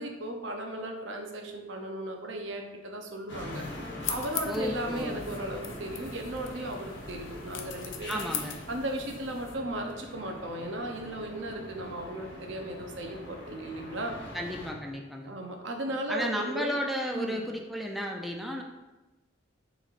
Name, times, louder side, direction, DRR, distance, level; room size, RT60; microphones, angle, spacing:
voice 1, 0.0-3.7 4.1-8.3 8.7-14.2 15.3-16.7 17.1-17.4, right 1 dB, 70° right, 3 dB, 0.6 m, -36 dB
sound 1, 3.3-14.7, left 1 dB, 65° left, 1.0 m, -43 dB
sound 2, 4.0-9.5, left 9 dB, 80° left, 0.4 m, -40 dB
voice 2, 4.5-5.2 8.1-8.6 14.3-15.3 16.1-18.6, equal, ahead, 0 dB, 0.3 m, -33 dB
6.3 x 3.2 x 2.4 m, 1.1 s
head